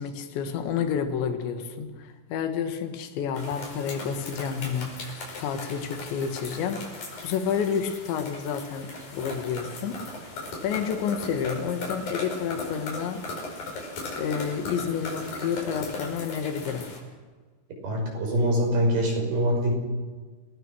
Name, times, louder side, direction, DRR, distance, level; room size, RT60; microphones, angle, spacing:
voice 1, 0.0-10.0 10.6-13.2 14.2-16.9, left 7 dB, 75° left, 6 dB, 4.0 m, -30 dB
sound 1, 3.4-17.0, left 2 dB, 50° left, 6.9 m, -38 dB
voice 2, 17.8-19.7, equal, 55° right, 0 dB, 7.4 m, -24 dB
29.5 x 18.5 x 6.3 m, 1.4 s
omnidirectional pair, 5.3 m